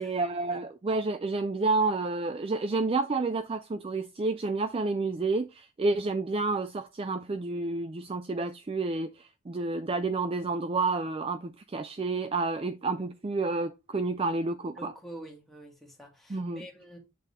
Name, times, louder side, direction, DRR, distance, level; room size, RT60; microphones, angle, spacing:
voice 1, 0.0-14.9 16.3-16.6, right 3 dB, 25° right, 0.3 m, -30 dB
voice 2, 14.8-17.0, right 1 dB, ahead, 1.8 m, -47 dB
8.2 x 3.7 x 4.1 m
head